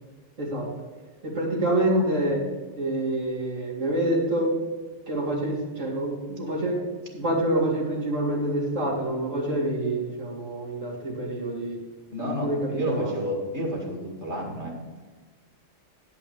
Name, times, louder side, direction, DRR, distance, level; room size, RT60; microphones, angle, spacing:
voice 1, 0.4-0.7 1.2-2.4 2.8-4.6 5.1-6.8 7.1-11.8 12.2-13.1, right 1 dB, 75° right, -4 dB, 2.8 m, -27 dB
voice 2, 12.1-14.7, equal, 60° right, -1 dB, 2.5 m, -30 dB
10.0 x 5.6 x 6.8 m, 1.3 s
omnidirectional pair, 1.3 m